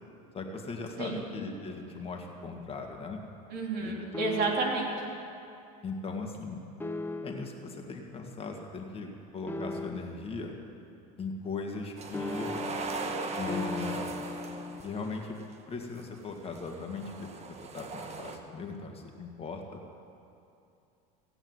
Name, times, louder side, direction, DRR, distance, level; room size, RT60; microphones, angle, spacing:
voice 1, 0.3-3.2 3.8-4.1 5.8-6.6 7.2-10.5 11.2-12.6 13.4-14.1 14.8-15.4 15.7-19.8, left 4 dB, 30° left, 2 dB, 1.9 m, -39 dB
voice 2, 3.5-4.9, right 3 dB, 55° right, -1 dB, 3.5 m, -30 dB
sound 1, 4.1-4.9 6.8-7.6 9.5-10.3 12.1-14.8, left 3 dB, 10° left, 0.7 m, -38 dB
sound 2, 12.0-15.3 16.2-18.4, right 4 dB, 35° right, 1.4 m, -39 dB
16.5 x 8.9 x 8.0 m, 2.6 s
supercardioid pair, 100°, 20 cm